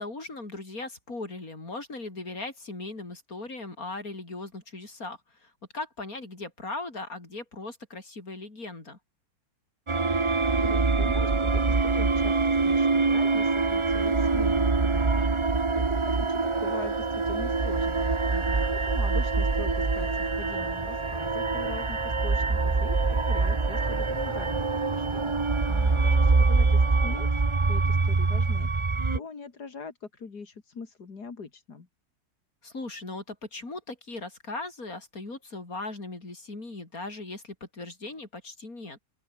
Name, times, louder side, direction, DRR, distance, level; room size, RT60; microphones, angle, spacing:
voice 1, 0.0-9.0 18.3-18.6 25.7-26.0 32.6-39.0, left 2 dB, 60° left, 5.6 m, -39 dB
sound 1, 9.9-29.2, right 3 dB, 20° right, 0.9 m, -25 dB
voice 2, 10.6-18.3 18.7-25.6 26.0-27.4 27.7-31.9, left 5 dB, 85° left, 3.2 m, -43 dB
open air
omnidirectional pair, 1.7 m